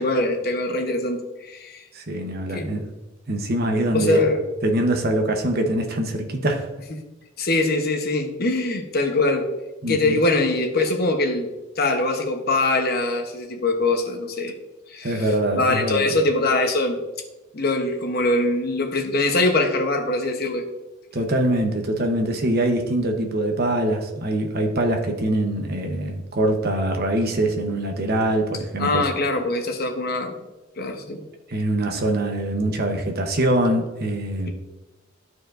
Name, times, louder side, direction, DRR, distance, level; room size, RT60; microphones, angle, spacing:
voice 1, 0.0-1.8 2.5-2.7 3.9-4.4 7.4-9.4 9.9-14.5 14.9-17.0 17.5-20.7 28.8-30.3 30.8-31.2, left 2 dB, 50° left, 3 dB, 1.0 m, -23 dB
voice 2, 1.9-2.8 3.3-4.2 4.6-6.7 9.8-10.2 15.0-16.1 21.1-29.1 31.5-34.5, right 1 dB, 50° right, 4 dB, 0.9 m, -23 dB
12.5 x 4.7 x 2.5 m, 1.1 s
head